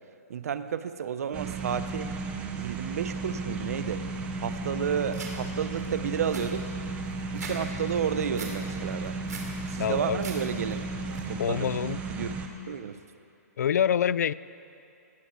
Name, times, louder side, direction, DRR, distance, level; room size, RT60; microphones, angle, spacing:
voice 1, 0.3-2.1 2.6-4.0 4.4-6.7 7.3-9.2 9.7-10.8 11.3-11.7 12.1-12.3 12.7-13.0, right 7 dB, 65° right, 12 dB, 0.8 m, -31 dB
sound 1, 1.3-12.5, right 3 dB, 15° right, 0.7 m, -34 dB
sound 2, 5.1-5.3 5.8-5.9 6.1-7.6 7.9-8.5 8.9-9.5 9.9-10.4 10.7-11.2, right 5 dB, 85° right, 3.0 m, -41 dB
voice 2, 9.8-10.2 11.4-12.0 13.6-14.3, left 9 dB, 75° left, 19 dB, 0.4 m, -26 dB
17.0 x 12.0 x 4.5 m, 2.6 s
hypercardioid pair, 165°, 9 cm